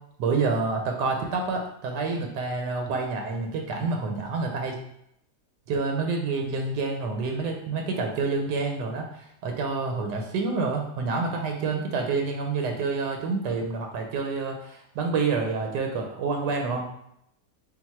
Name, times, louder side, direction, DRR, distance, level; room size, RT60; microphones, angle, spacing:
voice 1, 0.2-4.8 5.7-16.9, right 4 dB, 90° right, 2 dB, 1.2 m, -28 dB
3.8 x 2.4 x 4.2 m, 0.75 s
omnidirectional pair, 1.8 m